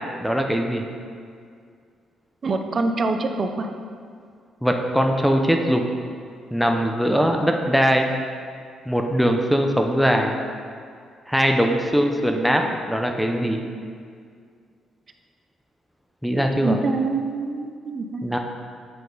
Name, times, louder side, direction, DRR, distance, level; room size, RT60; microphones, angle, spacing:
voice 1, 0.2-0.8 4.6-5.8 6.5-8.1 8.9-10.4 11.3-12.6 12.9-13.6 16.2-16.8 18.2-18.4, equal, ahead, 2 dB, 0.6 m, -21 dB
voice 2, 2.4-3.7 16.6-18.4, right 3 dB, 40° right, 6 dB, 0.6 m, -25 dB
7.8 x 5.2 x 3.8 m, 2.2 s
cardioid pair, 90°, 0 cm